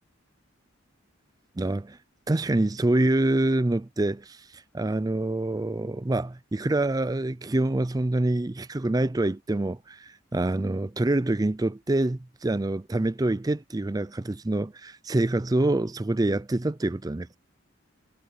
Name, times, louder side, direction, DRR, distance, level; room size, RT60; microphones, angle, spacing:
voice 1, 1.6-2.0 2.3-17.4, right 2 dB, 20° right, 0.4 m, -26 dB
head